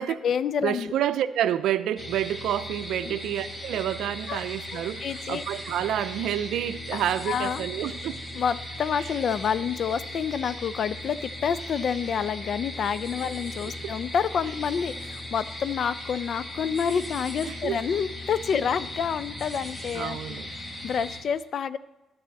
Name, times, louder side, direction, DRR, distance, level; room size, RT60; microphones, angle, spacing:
voice 1, 0.0-0.9 3.0-3.2 4.3-4.4 4.7-5.4 6.9-7.7 8.3-21.8, left 7 dB, 60° left, 0.4 m, -28 dB
voice 2, 0.6-8.2 13.8-13.9 17.5-17.8 19.9-20.5, right 11 dB, 80° right, 0.5 m, -29 dB
sound 1, 2.0-21.2, left 1 dB, 20° left, 1.9 m, -38 dB
11.0 x 4.2 x 7.6 m
cardioid pair, 90°, 0 cm